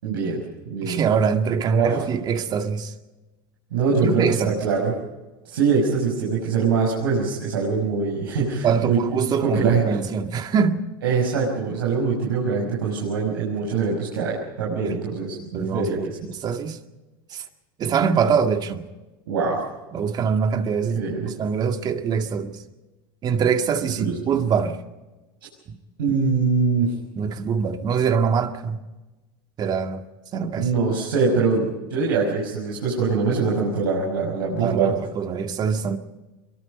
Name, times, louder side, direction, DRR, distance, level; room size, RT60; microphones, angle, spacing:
voice 1, 0.0-1.0 1.6-2.0 3.7-4.9 5.5-9.0 9.4-9.9 11.0-16.2 19.3-19.6 20.9-21.3 24.0-24.1 26.0-26.9 30.6-34.9, right 5 dB, 85° right, 6.2 m, -23 dB
voice 2, 0.8-2.9 4.0-4.6 8.6-10.8 14.8-15.2 15.4-16.8 17.3-17.4 17.8-18.8 19.9-22.6 23.2-24.8 25.7-25.8 27.2-28.8 29.6-30.0 30.3-30.7 34.5-36.0, right 6 dB, 35° right, 2.0 m, -24 dB
23.5 x 23.0 x 5.2 m
supercardioid pair, 105°, 12 cm